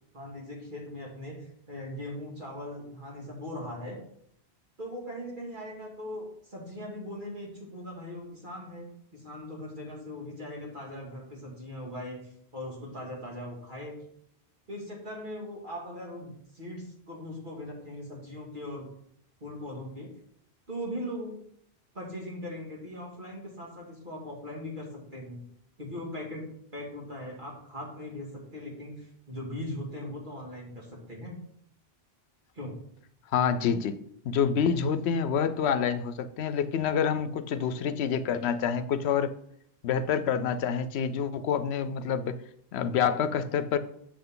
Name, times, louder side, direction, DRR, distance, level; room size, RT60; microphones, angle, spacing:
voice 1, 0.1-4.0 4.8-12.2 12.5-14.0 14.7-18.9 19.4-20.1 20.7-21.4 21.9-25.4 25.8-31.4 32.5-32.7, left 1 dB, 50° right, -3 dB, 2.5 m, -40 dB
voice 2, 33.3-34.0 34.2-39.4 39.8-42.4 42.7-43.8, left 7 dB, 90° left, 13 dB, 0.9 m, -27 dB
7.8 x 6.5 x 3.8 m, 0.69 s
omnidirectional pair, 1.1 m